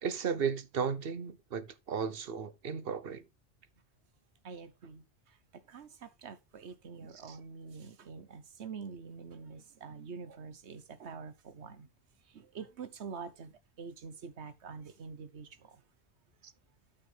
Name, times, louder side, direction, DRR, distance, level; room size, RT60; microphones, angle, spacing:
voice 1, 0.0-3.2 7.1-7.4 16.4-16.5, right 6 dB, 60° right, 1.0 m, -35 dB
voice 2, 4.4-11.9 12.3-13.5 13.8-15.8, right 5 dB, 90° right, 1.3 m, -46 dB
12.5 x 5.7 x 3.4 m
omnidirectional pair, 1.1 m